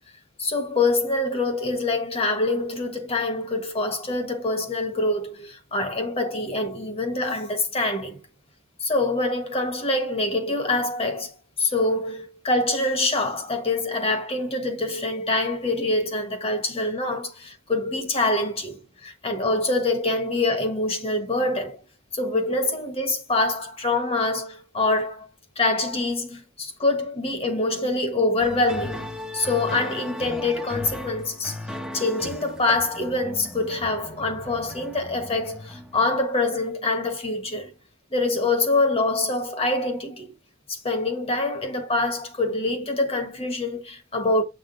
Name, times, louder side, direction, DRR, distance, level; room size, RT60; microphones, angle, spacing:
voice 1, 0.4-8.2 8.8-21.8 22.1-25.3 25.6-31.6 31.9-37.7 38.1-40.3 40.7-44.4, left 2 dB, 30° left, 1.4 m, -25 dB
sound 1, 28.4-36.2, left 1 dB, 5° right, 0.9 m, -37 dB
7.8 x 3.7 x 3.9 m
head